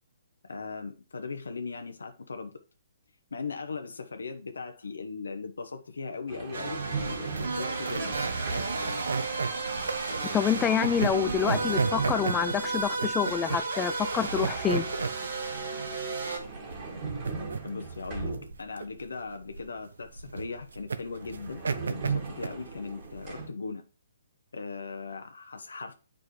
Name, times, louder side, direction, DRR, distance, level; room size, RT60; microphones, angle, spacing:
voice 1, 0.4-2.5 3.3-8.2 17.6-18.3 18.6-21.6 21.9-23.8 24.5-25.9, left 4 dB, 85° left, 0.8 m, -38 dB
sound 1, 6.3-9.0 10.9-13.8 15.9-18.8 20.7-20.8 21.1-23.5, right 4 dB, 30° right, 1.8 m, -38 dB
sound 2, 6.5-16.4, right 3 dB, 60° right, 3.0 m, -33 dB
sound 3, 7.2-23.4, right 4 dB, 85° right, 0.7 m, -34 dB
voice 2, 10.3-14.9, left 8 dB, 15° left, 0.3 m, -27 dB
7.8 x 5.1 x 3.2 m
hypercardioid pair, 150°, 0 cm